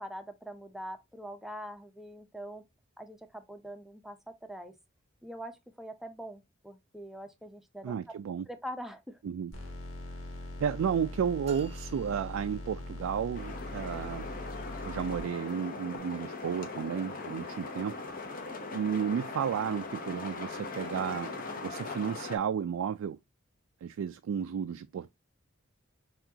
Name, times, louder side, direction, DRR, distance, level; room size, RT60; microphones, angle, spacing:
voice 1, 0.0-2.6 3.0-4.7 5.2-8.2 8.5-9.2 17.3-17.4, equal, ahead, 0.6 m, -43 dB
voice 2, 7.8-8.5 9.2-9.5 10.6-14.3 14.8-18.3 18.7-23.2 23.8-25.1, right 7 dB, 85° right, 0.3 m, -33 dB
sound 1, 9.5-15.2, left 1 dB, 80° left, 1.2 m, -42 dB
sound 2, 11.4-13.1, right 4 dB, 30° right, 0.8 m, -52 dB
sound 3, 13.3-22.4, left 3 dB, 45° left, 0.8 m, -40 dB
5.9 x 2.4 x 2.7 m
head